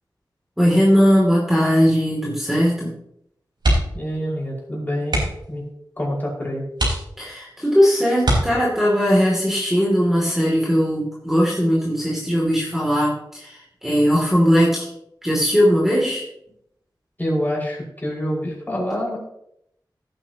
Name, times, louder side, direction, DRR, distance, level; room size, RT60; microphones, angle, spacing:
voice 1, 0.6-2.9 7.2-14.9 15.2-16.2, equal, 5° right, -5 dB, 2.8 m, -19 dB
sound 1, 3.5-4.1 4.4-4.6 5.0-5.5 6.1-6.2 6.7-7.5 8.2-9.0 10.5-10.9 11.2-11.3, right 1 dB, 75° right, 4.6 m, -22 dB
voice 2, 3.9-5.2 5.5-5.6 6.0-6.6 17.2-19.2, equal, 25° left, -4 dB, 5.4 m, -26 dB
17.0 x 9.3 x 3.0 m, 0.77 s
wide cardioid pair, 90°, 8 cm